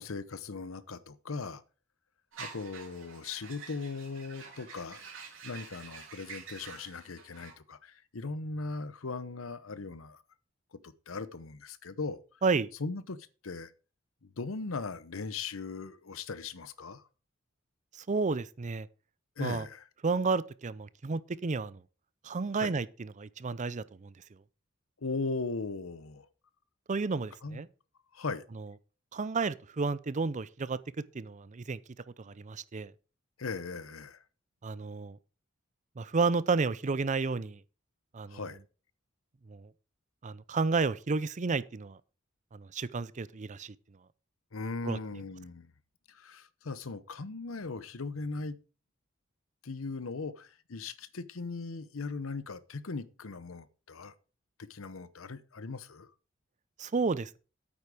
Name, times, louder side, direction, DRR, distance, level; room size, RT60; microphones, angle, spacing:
voice 1, 0.0-1.6 2.4-5.0 5.4-10.2 10.7-12.4 12.8-13.2 13.4-13.7 14.2-17.0 19.4-19.9 22.6-22.7 25.0-26.3 27.4-27.6 28.1-28.4 33.4-34.2 38.3-38.6 44.5-45.7 46.1-48.6 49.6-54.1 54.7-56.1, left 4 dB, 80° left, 0.8 m, -39 dB
sound 1, 2.3-7.5, right 5 dB, 70° right, 3.4 m, -48 dB
voice 2, 18.0-18.9 19.4-19.7 20.0-21.8 22.2-24.1 26.9-27.7 28.6-28.7 29.1-31.8 32.2-32.9 34.6-35.2 36.0-37.6 38.1-38.4 39.5-39.7 40.2-42.0 42.5-43.7 44.8-45.0 56.8-57.4, right 4 dB, 35° right, 0.5 m, -31 dB
8.9 x 8.4 x 4.9 m
head